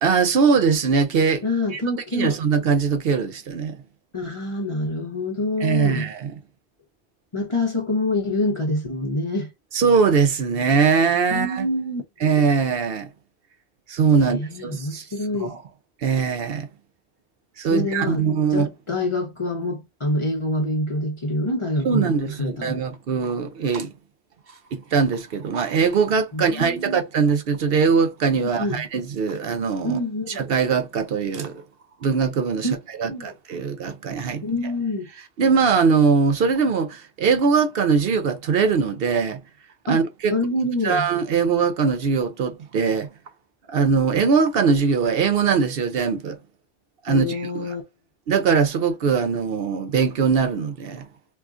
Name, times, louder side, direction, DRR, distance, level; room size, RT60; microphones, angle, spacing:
voice 1, 0.0-1.4 1.7-1.8 2.1-3.8 5.6-6.3 9.7-11.7 12.2-13.1 13.9-15.0 15.4-15.6 16.0-16.7 17.6-18.7 21.8-23.9 24.7-30.0 30.4-31.6 32.0-32.7 33.0-34.4 35.4-39.4 39.9-40.3 40.8-43.1 43.7-46.4 47.0-47.7 48.3-51.1, right 5 dB, 65° right, 0.7 m, -21 dB
voice 2, 1.4-2.4 4.1-6.1 7.3-9.5 11.3-12.0 14.2-15.6 17.7-22.8 26.3-27.0 28.4-28.8 29.8-30.4 32.6-32.7 33.0-33.3 34.4-35.1 39.9-40.0 40.3-41.1 47.1-47.8, left 1 dB, 30° left, 0.7 m, -26 dB
3.6 x 2.4 x 2.4 m
omnidirectional pair, 1.1 m